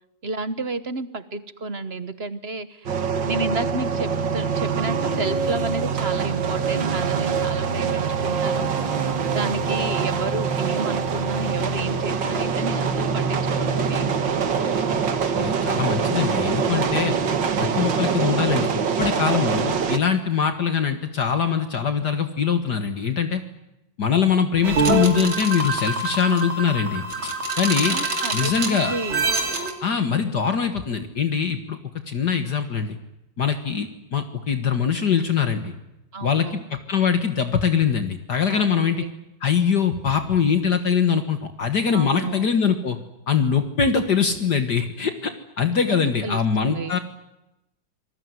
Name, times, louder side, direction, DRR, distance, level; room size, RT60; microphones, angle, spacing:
voice 1, 0.2-3.0 3.3-8.7 9.3-14.1 27.9-29.2 36.1-36.6 38.5-39.1 41.9-42.5 45.9-46.9, right 3 dB, 35° right, 13 dB, 1.2 m, -31 dB
sound 1, 2.9-20.0, right 6 dB, 65° right, 2.3 m, -24 dB
voice 2, 15.0-17.1 17.6-18.7 19.0-23.4 24.0-27.0 27.6-28.0 28.3-29.0 29.8-31.8 32.1-33.0 33.4-35.7 36.2-39.1 39.4-43.0 43.3-45.3 45.6-47.0, left 6 dB, 55° left, 8 dB, 2.2 m, -22 dB
sound 2, 24.6-29.7, right 3 dB, 80° right, 3.8 m, -25 dB
26.5 x 20.0 x 9.6 m, 0.91 s
omnidirectional pair, 2.2 m